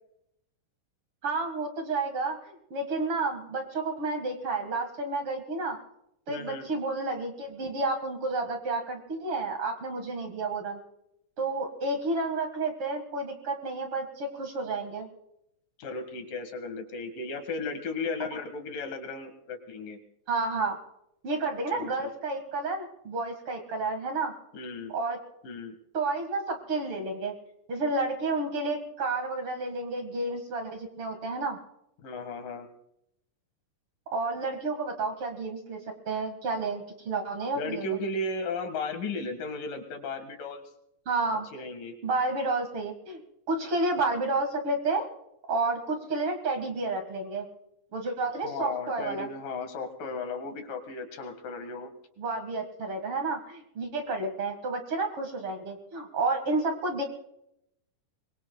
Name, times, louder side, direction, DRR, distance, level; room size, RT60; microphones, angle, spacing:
voice 1, 1.2-5.8 6.3-10.8 11.4-15.1 20.3-20.8 21.2-24.3 24.9-25.2 25.9-27.3 27.7-31.6 34.1-35.8 36.1-38.0 41.1-41.5 42.0-43.2 43.5-45.1 45.5-47.5 47.9-49.3 52.2-57.0, right 3 dB, 45° right, 4 dB, 2.3 m, -30 dB
voice 2, 6.3-6.7 15.8-20.0 21.7-22.1 24.5-24.9 25.4-25.8 32.0-32.7 37.6-40.7 41.5-42.0 48.4-51.9, left 3 dB, 80° left, 6 dB, 3.4 m, -35 dB
25.0 x 22.5 x 2.3 m, 0.80 s
omnidirectional pair, 3.8 m